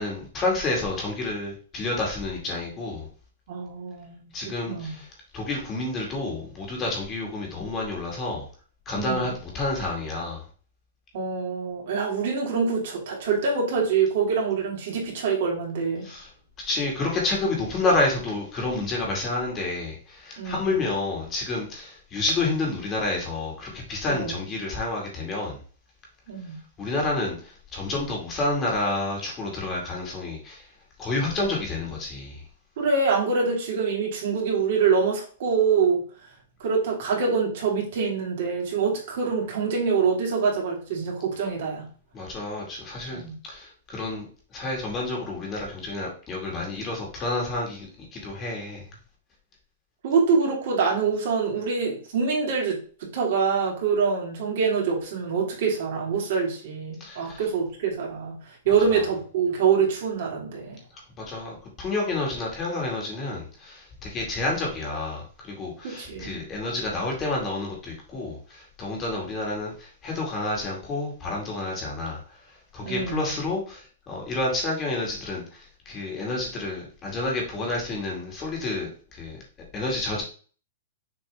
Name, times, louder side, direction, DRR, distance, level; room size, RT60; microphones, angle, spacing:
voice 1, 0.0-3.1 4.3-5.1 5.3-8.5 8.9-10.5 16.0-16.3 16.6-25.6 26.8-30.7 31.0-32.4 42.1-44.3 44.5-48.9 57.0-57.4 58.7-59.0 61.2-79.4 79.7-80.2, left 2 dB, 20° left, 2.2 m, -29 dB
voice 2, 3.5-4.3 4.7-4.9 8.9-9.3 11.1-16.1 20.4-20.7 24.1-24.3 26.3-26.6 32.8-36.0 36.6-41.9 43.1-43.4 50.0-60.8 65.8-66.4 72.8-73.2, right 5 dB, 55° right, 2.9 m, -25 dB
6.7 x 3.8 x 3.7 m
hypercardioid pair, 155°, 0 cm